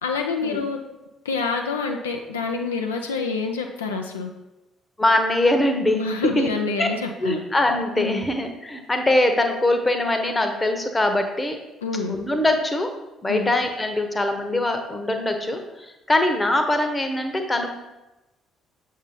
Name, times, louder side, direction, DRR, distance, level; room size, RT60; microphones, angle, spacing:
voice 1, 0.0-0.8 1.2-4.3 5.9-7.4 7.9-8.2 11.8-12.1 13.3-13.5, left 4 dB, 80° left, 3 dB, 0.3 m, -27 dB
voice 2, 5.0-6.1 6.4-6.5 6.8-6.9 7.2-11.6 12.1-12.9 13.2-17.7, left 1 dB, 20° left, 5 dB, 0.8 m, -22 dB
6.8 x 2.7 x 5.4 m, 0.99 s
figure-of-eight pair, 45°, 0 cm